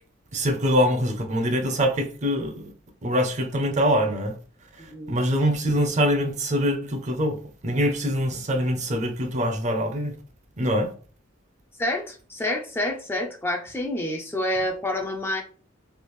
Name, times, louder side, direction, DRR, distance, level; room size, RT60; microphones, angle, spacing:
voice 1, 0.3-2.7 3.0-4.3 4.8-7.4 7.6-10.1 10.6-10.9, equal, 35° right, 0.6 m, -24 dB
voice 2, 11.8-15.4, left 1 dB, 10° left, 0.4 m, -28 dB
3.4 x 2.4 x 3.0 m
head